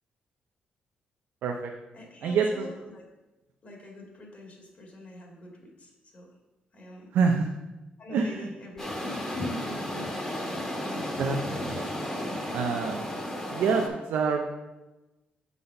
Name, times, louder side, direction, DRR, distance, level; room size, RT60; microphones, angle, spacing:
voice 1, 1.4-1.7 2.2-2.7 7.1-7.5 8.1-8.5 11.0-12.1 12.5-13.1 13.5-14.4, right 5 dB, 85° right, 2 dB, 0.6 m, -27 dB
voice 2, 1.9-3.0 3.6-6.4 6.7-7.1 8.0-10.6, left 2 dB, 45° left, -1 dB, 2.0 m, -43 dB
sound 1, 8.8-13.9, left 1 dB, 15° left, 1.5 m, -33 dB
6.8 x 4.1 x 5.5 m, 1.0 s
cardioid pair, 95°, 3 cm